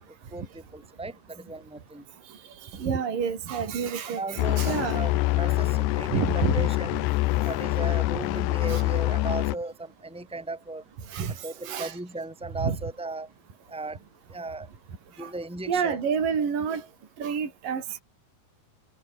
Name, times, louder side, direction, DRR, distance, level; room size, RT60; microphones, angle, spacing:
voice 1, 0.1-2.0 4.1-6.9 7.4-10.8 11.4-13.3 13.7-14.0 14.3-14.7 15.2-16.0, right 2 dB, ahead, 5.0 m, -36 dB
voice 2, 2.3-5.0 6.1-6.7 8.7-8.8 11.1-12.0 12.6-12.8 15.2-15.3 15.7-16.9 17.2-18.0, right 6 dB, 55° right, 5.7 m, -29 dB
sound 1, 4.4-9.6, left 18 dB, 85° left, 2.9 m, -25 dB
omnidirectional pair, 4.6 m